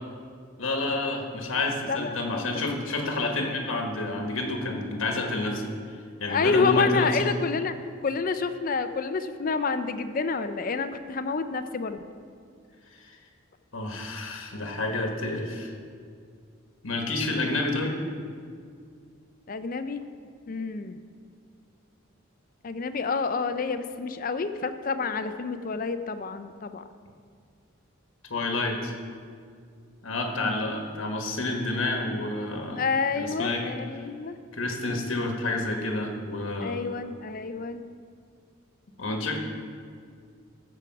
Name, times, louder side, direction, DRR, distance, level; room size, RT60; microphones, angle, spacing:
voice 1, 0.6-5.7 6.2-7.3 12.9-13.1 13.7-15.7 16.8-18.0 28.3-28.9 30.0-32.8 33.2-33.6 34.0-34.1 34.5-36.8 39.0-39.4, left 2 dB, 70° left, 2 dB, 1.3 m, -29 dB
voice 2, 2.5-3.2 6.3-7.7 8.0-12.0 19.5-20.0 20.5-21.0 22.6-26.8 30.4-30.6 32.8-34.4 36.6-37.8, left 4 dB, 40° left, 10 dB, 0.5 m, -28 dB
14.0 x 4.8 x 5.9 m, 2.2 s
head